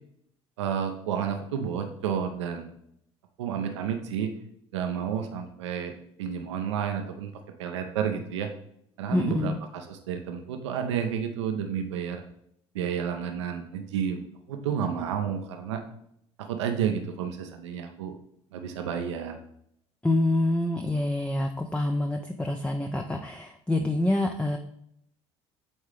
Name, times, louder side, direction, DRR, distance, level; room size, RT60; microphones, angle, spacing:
voice 1, 0.6-2.7 3.4-4.3 4.7-5.9 6.2-7.3 7.6-8.5 9.0-12.2 12.7-14.2 14.5-15.8 16.4-18.2 18.5-19.4, right 8 dB, 85° right, 5 dB, 0.7 m, -31 dB
voice 2, 9.1-9.6 20.0-24.6, left 1 dB, 10° left, 5 dB, 0.5 m, -26 dB
8.3 x 3.6 x 3.3 m, 0.73 s
hypercardioid pair, 65°, 15 cm